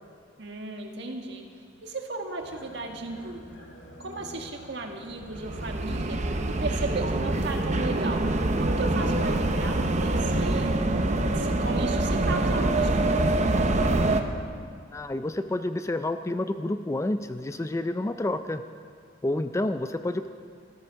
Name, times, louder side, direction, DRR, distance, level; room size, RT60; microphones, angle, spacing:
voice 1, 0.4-1.4 1.8-3.7 4.0-6.2 6.6-8.2 8.6-10.7 11.3-13.6, right 3 dB, 60° right, 3 dB, 1.6 m, -35 dB
sound 1, 2.4-14.2, right 1 dB, 80° left, 2.7 m, -46 dB
sound 2, 5.3-14.2, right 2 dB, 35° right, 0.8 m, -25 dB
voice 2, 14.9-18.6 19.2-20.3, left 1 dB, 15° left, 10 dB, 0.4 m, -29 dB
13.5 x 13.5 x 6.3 m, 2.1 s
head